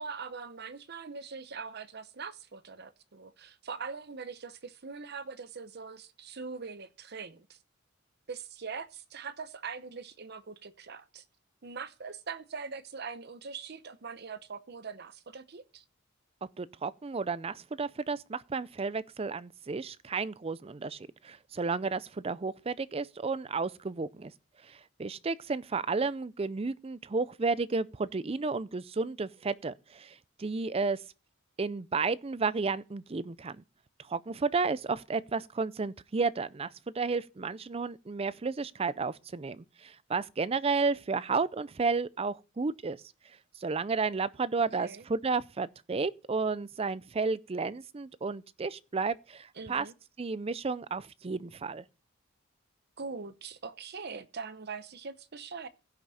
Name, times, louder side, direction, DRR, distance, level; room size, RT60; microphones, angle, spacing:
voice 1, 0.0-7.6 8.3-11.2 11.6-15.8 44.8-45.0 49.6-49.9 53.0-55.7, right 5 dB, 50° right, 0.8 m, -42 dB
voice 2, 16.6-24.3 24.6-31.0 31.6-33.6 34.1-43.0 43.6-49.9 50.2-51.8, right 4 dB, 30° right, 0.4 m, -32 dB
16.0 x 6.0 x 4.1 m
head